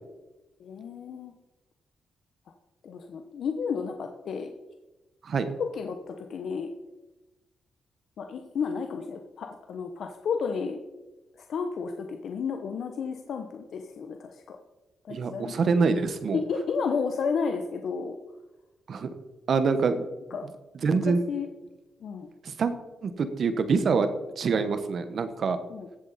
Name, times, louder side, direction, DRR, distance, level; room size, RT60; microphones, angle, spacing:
voice 1, 0.6-1.3 2.8-4.5 5.6-6.7 8.2-10.8 11.4-14.6 15.0-15.5 16.3-18.2 20.3-20.5 20.9-21.5 22.0-22.3 25.7-25.9, left 5 dB, 70° left, 5 dB, 0.9 m, -32 dB
voice 2, 15.1-16.4 18.9-19.1 19.5-20.0 20.8-21.2 22.4-22.7 23.0-24.1 24.4-25.6, right 5 dB, 60° right, 10 dB, 1.2 m, -25 dB
15.5 x 7.8 x 4.3 m, 1.1 s
cardioid pair, 80°, 0 cm